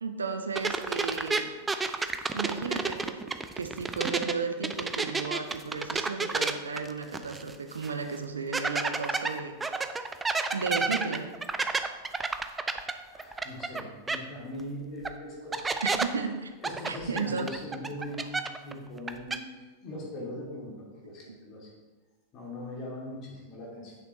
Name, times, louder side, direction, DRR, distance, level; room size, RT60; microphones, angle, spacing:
voice 1, 0.0-1.5 2.3-9.6 10.5-11.3 15.8-16.5 16.9-17.5 21.3-21.4, right 5 dB, 75° right, 7 dB, 0.6 m, -34 dB
sound 1, 0.5-4.3 4.6-7.5 7.8-7.9 8.5-13.8 14.1-14.2 15.0-15.1 15.5-16.0 16.6-18.7 19.0-19.4, right 4 dB, 15° right, 0.4 m, -30 dB
voice 2, 13.1-15.8 16.6-21.7 22.3-24.0, left 1 dB, 35° left, -4 dB, 2.6 m, -41 dB
8.4 x 6.5 x 3.1 m, 1.3 s
figure-of-eight pair, 90°, 0 cm